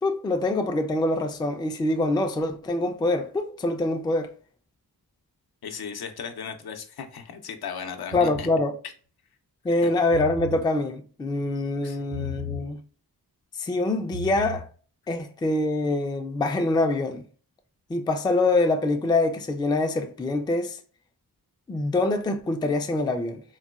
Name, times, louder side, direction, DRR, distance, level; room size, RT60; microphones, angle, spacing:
voice 1, 0.0-4.3 8.1-8.7 9.6-12.8 13.6-14.7 15.1-17.2 17.9-20.8 21.7-23.4, left 2 dB, 10° left, 0.3 m, -25 dB
voice 2, 5.6-8.5 9.8-9.9 11.8-12.0, left 6 dB, 70° left, 0.6 m, -36 dB
sound 1, 8.1-8.6 10.0-10.6 12.1-12.7 14.0-14.6, left 1 dB, 80° right, 1.5 m, -35 dB
3.9 x 2.2 x 2.3 m
wide cardioid pair, 85°, 39 cm